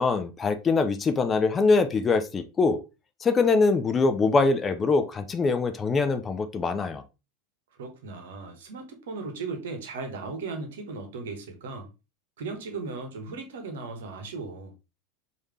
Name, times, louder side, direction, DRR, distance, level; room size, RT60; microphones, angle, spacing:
voice 1, 0.0-2.8 3.2-7.0, left 4 dB, 25° left, 0.5 m, -23 dB
voice 2, 7.8-11.9 12.4-14.7, right 4 dB, 65° right, 1.0 m, -37 dB
4.8 x 2.7 x 3.1 m
figure-of-eight pair, 85°, 0 cm